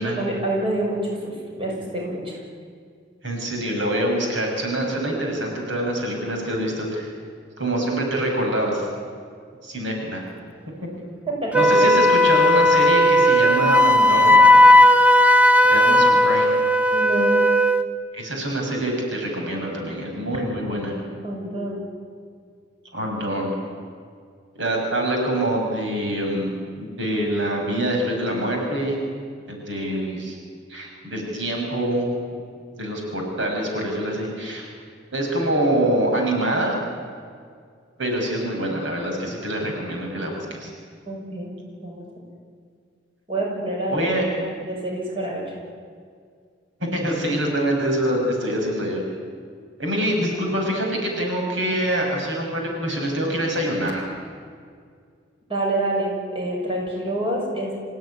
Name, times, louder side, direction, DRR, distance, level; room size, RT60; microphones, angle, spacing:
voice 1, 0.0-2.4 11.3-11.6 16.9-17.4 21.2-21.9 23.0-23.1 41.1-41.5 41.8-42.0 43.3-44.1 44.4-45.5 55.5-57.7, right 1 dB, 30° right, -2 dB, 6.6 m, -27 dB
voice 2, 3.2-7.1 7.6-8.9 9.6-10.2 11.5-14.5 15.6-16.5 18.1-20.9 22.9-23.5 24.6-29.0 29.5-30.4 30.7-32.1 32.8-34.7 35.1-36.8 38.0-40.7 43.9-44.3 46.8-49.0 49.8-54.1, right 1 dB, 75° right, 0 dB, 6.2 m, -25 dB
Wind instrument woodwind instrument, 11.5-17.9, left 1 dB, 10° right, 0.8 m, -15 dB
27.0 x 16.5 x 9.9 m, 2.1 s
head